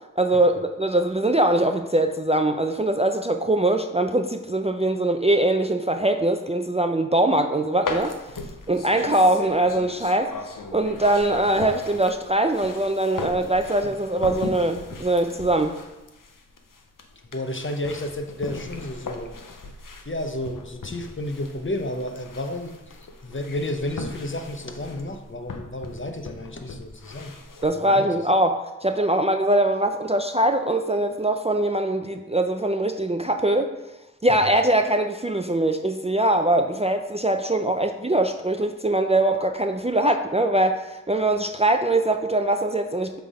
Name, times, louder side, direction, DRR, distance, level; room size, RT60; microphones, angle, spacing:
voice 1, 0.2-8.1 8.7-15.8 27.6-33.7 34.2-43.2, right 1 dB, 20° right, 6 dB, 0.4 m, -22 dB
sound 1, 7.8-27.6, left 3 dB, 85° left, 0.7 m, -38 dB
voice 2, 17.3-19.3 20.0-27.3 27.8-28.1, left 1 dB, 40° left, 5 dB, 0.7 m, -31 dB
7.6 x 3.5 x 4.9 m, 0.99 s
wide cardioid pair, 55°, 32 cm